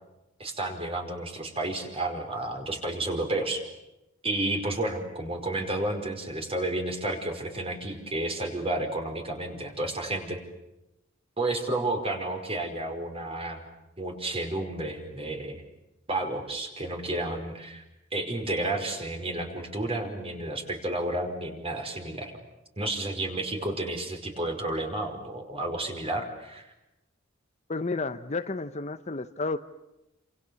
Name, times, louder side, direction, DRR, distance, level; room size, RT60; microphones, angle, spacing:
voice 1, 0.4-3.6 4.2-10.4 11.4-13.6 14.0-15.6 16.1-17.8 18.1-22.3 22.8-26.7, right 2 dB, 30° right, 4 dB, 5.1 m, -31 dB
voice 2, 27.7-29.6, left 3 dB, 35° left, 10 dB, 0.9 m, -31 dB
29.5 x 27.5 x 7.1 m, 0.92 s
head